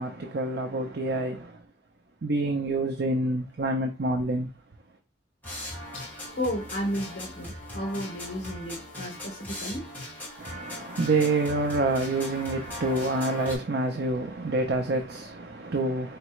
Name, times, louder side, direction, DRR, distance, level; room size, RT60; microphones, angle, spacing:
voice 1, 0.0-1.6 2.2-4.5 10.4-16.2, right 2 dB, 65° right, 0.6 m, -27 dB
sound 1, 5.4-13.6, left 1 dB, 10° left, 1.7 m, -39 dB
voice 2, 5.9-9.9, equal, 65° left, 1.1 m, -33 dB
4.7 x 3.3 x 3.1 m
head